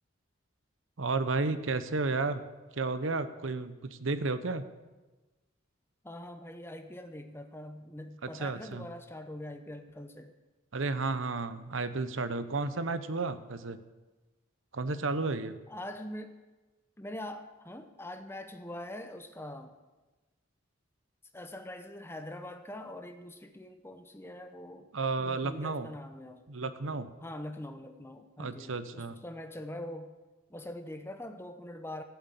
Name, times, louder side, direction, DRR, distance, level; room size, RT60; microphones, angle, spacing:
voice 1, 1.0-2.4 2.7-4.7 8.2-8.8 10.7-13.8 14.7-15.6 24.9-25.9 26.5-27.1 28.4-29.2, right 3 dB, 75° right, 12 dB, 0.9 m, -32 dB
voice 2, 6.0-10.3 15.7-16.4 17.0-19.8 21.3-24.9 25.2-30.1 30.5-32.0, left 1 dB, 10° left, 7 dB, 1.0 m, -43 dB
16.0 x 8.1 x 8.3 m, 1.2 s
head